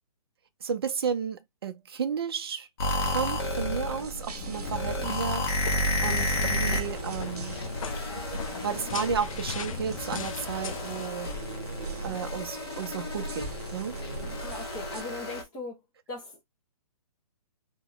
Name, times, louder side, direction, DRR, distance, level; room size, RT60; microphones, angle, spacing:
voice 1, 0.6-2.7 3.0-7.6 8.6-11.4 12.0-14.0, right 7 dB, 40° right, 0.5 m, -33 dB
sound 1, 2.8-15.4, left 1 dB, 40° left, 1.0 m, -32 dB
sound 2, 3.0-15.0, right 2 dB, 85° right, 0.6 m, -40 dB
sound 3, 4.7-11.1, left 7 dB, 60° left, 0.4 m, -39 dB
voice 2, 14.4-15.8 16.1-16.4, left 3 dB, 10° left, 0.5 m, -39 dB
2.9 x 2.1 x 3.8 m
hypercardioid pair, 170°, 19 cm